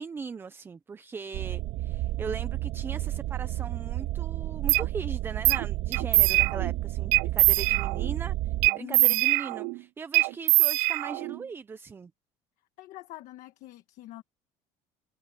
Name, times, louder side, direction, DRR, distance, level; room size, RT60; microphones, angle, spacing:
voice 1, 0.0-12.1, right 5 dB, 15° right, 0.4 m, -39 dB
sound 1, 1.3-8.7, right 15 dB, 65° right, 1.7 m, -31 dB
sound 2, 4.7-4.9 5.5-5.7 5.9-6.7 7.1-8.1 8.6-9.8 10.1-11.4, right 26 dB, 85° right, 0.4 m, -23 dB
voice 2, 8.8-9.2 12.8-14.2, left 15 dB, 65° left, 1.5 m, -44 dB
cardioid pair, 155°, 13 cm